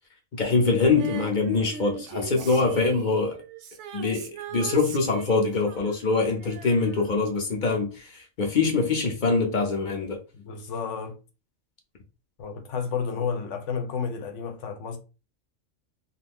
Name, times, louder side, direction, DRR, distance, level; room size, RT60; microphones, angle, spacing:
voice 1, 0.3-3.4 3.9-10.2, left 4 dB, 50° left, 0.6 m, -24 dB
Female singing, 1.0-7.6 7.9-8.0, right 8 dB, 70° right, 0.8 m, -40 dB
voice 2, 2.4-2.7 10.3-11.2 12.4-15.0, left 6 dB, 70° left, 1.0 m, -31 dB
2.6 x 2.4 x 3.5 m
omnidirectional pair, 1.3 m